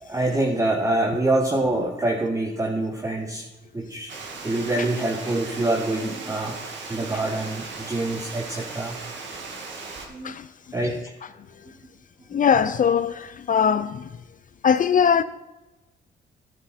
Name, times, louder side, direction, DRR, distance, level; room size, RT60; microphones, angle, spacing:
voice 1, 0.0-3.5 3.7-4.1 4.4-6.6 6.9-9.0 10.1-10.3 10.7-11.0, right 2 dB, 15° right, 1.2 m, -25 dB
Water, 4.1-10.1, right 4 dB, 65° right, 2.0 m, -37 dB
voice 2, 12.3-14.0 14.6-15.2, left 7 dB, 40° left, 0.5 m, -20 dB
12.5 x 9.1 x 4.3 m
cardioid pair, 90°, 20 cm